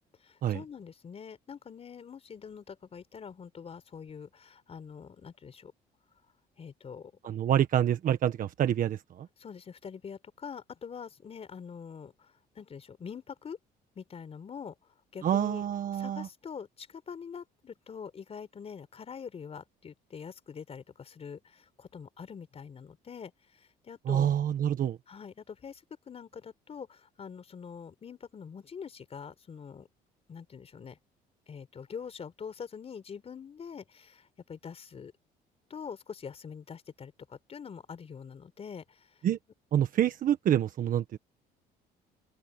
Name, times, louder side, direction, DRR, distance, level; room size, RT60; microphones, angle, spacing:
voice 1, 0.2-5.7 6.6-7.1 9.4-13.6 13.9-14.7 15.1-15.6 15.9-24.3 25.1-29.9 30.3-31.0 31.5-35.1 35.7-39.1, left 6 dB, 35° left, 4.1 m, -44 dB
voice 2, 7.2-9.3 15.2-16.3 24.1-25.0 39.2-39.4 39.7-41.2, right 10 dB, 55° right, 1.5 m, -27 dB
open air
cardioid pair, 110°, 17 cm